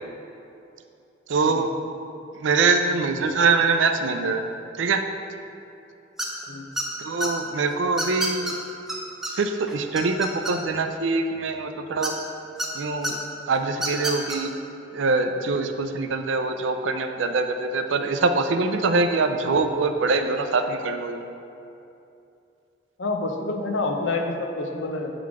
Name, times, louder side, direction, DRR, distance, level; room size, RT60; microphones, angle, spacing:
voice 1, 1.3-1.7 2.4-4.4 4.8-5.1 7.0-8.6 9.3-12.1 12.7-13.2 13.5-14.5 14.9-21.2, right 3 dB, 85° right, 7 dB, 0.4 m, -23 dB
sound 1, 6.2-6.4 6.8-7.3 8.0-8.5 8.9-9.0 9.2-9.3 9.7-10.8 12.0-12.7 13.0-13.1 13.7-14.4, right 1 dB, ahead, 0.7 m, -28 dB
voice 2, 23.0-25.1, left 2 dB, 75° left, 3 dB, 0.7 m, -28 dB
7.7 x 3.8 x 4.8 m, 2.7 s
head